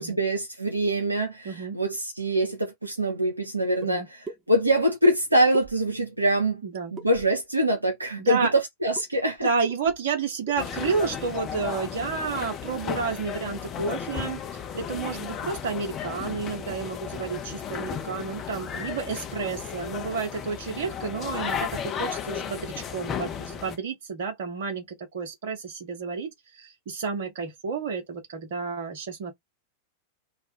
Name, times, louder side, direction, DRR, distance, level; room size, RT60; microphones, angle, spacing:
voice 1, 0.0-6.6 6.9-9.5, right 1 dB, 85° right, 0.5 m, -24 dB
voice 2, 1.4-1.8 3.8-4.1 6.6-6.9 8.2-8.5 9.4-14.4 14.7-29.3, right 5 dB, 55° right, 0.9 m, -31 dB
sound 1, 3.8-3.9 4.2-4.4 5.5-6.1 7.0-7.5 8.9-9.1 9.4-9.5 9.7-10.1 10.5-10.8, right 3 dB, 20° right, 0.6 m, -41 dB
sound 2, 10.6-23.8, left 8 dB, 30° left, 0.6 m, -34 dB
2.5 x 2.2 x 3.3 m
figure-of-eight pair, 90°, 0 cm